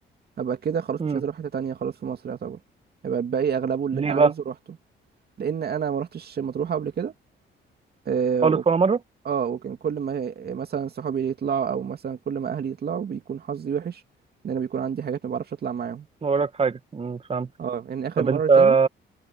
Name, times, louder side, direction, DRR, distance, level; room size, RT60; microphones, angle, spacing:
voice 1, 0.4-2.6 3.0-4.5 5.4-7.1 8.1-8.6 9.3-14.0 14.4-16.1 17.6-18.7, right 7 dB, 55° right, 2.4 m, -28 dB
voice 2, 3.9-4.3 8.4-9.0 16.2-17.5 18.2-18.9, right 5 dB, 30° right, 1.4 m, -21 dB
cardioid pair, 90°, 20 cm